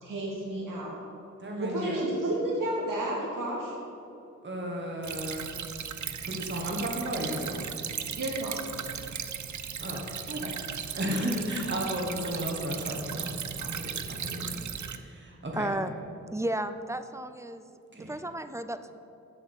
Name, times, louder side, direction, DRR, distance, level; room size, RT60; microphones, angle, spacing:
voice 1, 0.0-1.0 1.6-3.7 8.2-8.6, right 1 dB, 90° right, -4 dB, 2.5 m, -31 dB
voice 2, 1.4-2.0 4.4-5.5 6.2-7.6 9.8-10.5 10.9-13.9 14.2-15.7 17.9-18.1, equal, 35° right, -1 dB, 1.6 m, -34 dB
Stream / Trickle dribble, 5.0-15.0, right 8 dB, 65° right, 0.6 m, -37 dB
voice 3, 15.5-15.9 16.3-17.7 17.9-18.9, right 1 dB, 10° right, 10 dB, 0.4 m, -33 dB
7.7 x 7.6 x 7.2 m, 2.6 s
wide cardioid pair, 110°, 31 cm